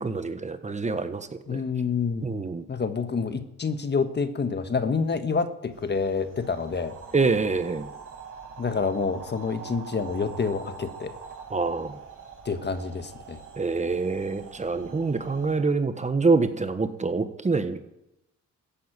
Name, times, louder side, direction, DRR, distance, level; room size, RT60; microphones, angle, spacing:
voice 1, 0.0-1.6 2.2-2.6 7.1-7.9 11.5-12.0 13.6-17.8, right 4 dB, 25° right, 10 dB, 1.3 m, -26 dB
voice 2, 1.5-2.3 2.7-7.0 8.6-11.1 12.4-13.4, left 5 dB, 35° left, 9 dB, 1.5 m, -28 dB
sound 1, 5.7-15.6, right 5 dB, 45° right, 5.4 m, -44 dB
14.5 x 9.4 x 9.2 m, 0.86 s
cardioid pair, 90°, 30 cm